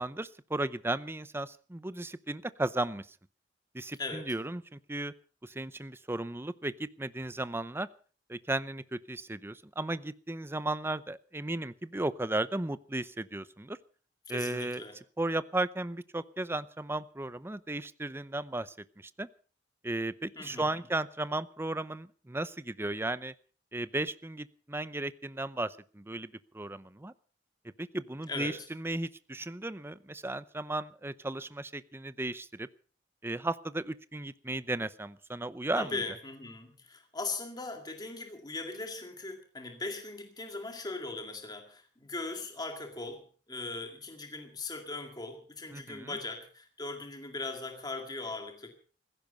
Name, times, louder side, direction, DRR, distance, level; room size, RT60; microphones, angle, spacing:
voice 1, 0.0-3.1 3.7-5.1 5.4-7.9 8.3-13.8 14.3-14.8 15.2-18.7 19.0-19.3 19.8-23.3 23.7-27.1 27.8-32.7 33.2-35.9 45.7-46.1, right 2 dB, 15° right, 15 dB, 0.6 m, -35 dB
voice 2, 4.0-4.3 14.3-15.0 20.4-20.8 28.3-28.7 35.7-48.7, left 3 dB, 25° left, 4 dB, 2.1 m, -39 dB
15.5 x 15.5 x 5.4 m, 0.41 s
head